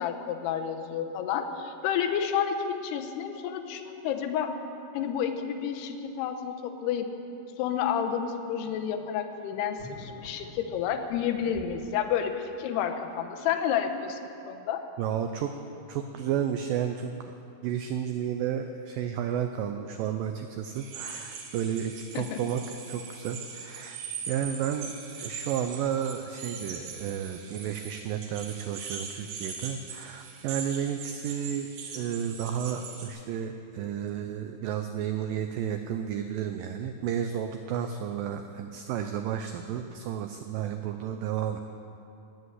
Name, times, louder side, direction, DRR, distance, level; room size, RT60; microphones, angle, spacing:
voice 1, 0.0-4.5 4.9-7.1 7.6-14.2 14.5-14.8 22.1-22.4, left 8 dB, 85° left, 6 dB, 2.9 m, -30 dB
sound 1, 9.7-12.0, equal, 20° left, 1.7 m, -47 dB
voice 2, 15.0-15.5 15.9-17.3 17.6-24.0 24.3-41.6, right 9 dB, 80° right, 6 dB, 2.0 m, -32 dB
sound 2, 20.7-33.1, right 5 dB, 65° right, 3.1 m, -41 dB
19.5 x 8.0 x 8.1 m, 2.8 s
omnidirectional pair, 4.7 m